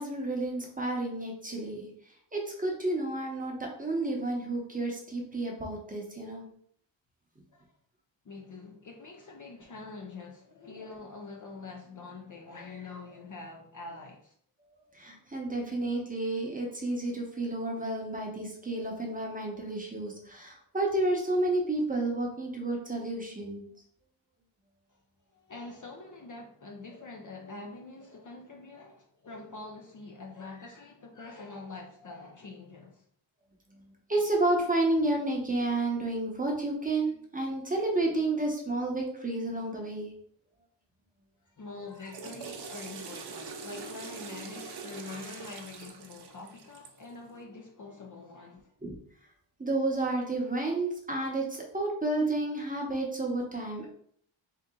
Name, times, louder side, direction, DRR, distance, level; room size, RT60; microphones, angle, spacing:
voice 1, 0.0-6.4 14.6-23.6 33.7-40.1 48.8-48.9 49.6-53.9, right 2 dB, 15° right, 0.8 m, -31 dB
voice 2, 8.2-14.3 25.3-33.1 41.4-48.7, left 3 dB, 40° left, 0.5 m, -45 dB
Water / Toilet flush, 41.8-47.1, right 5 dB, 55° right, 0.6 m, -43 dB
3.7 x 2.9 x 3.7 m
wide cardioid pair, 160°, 49 cm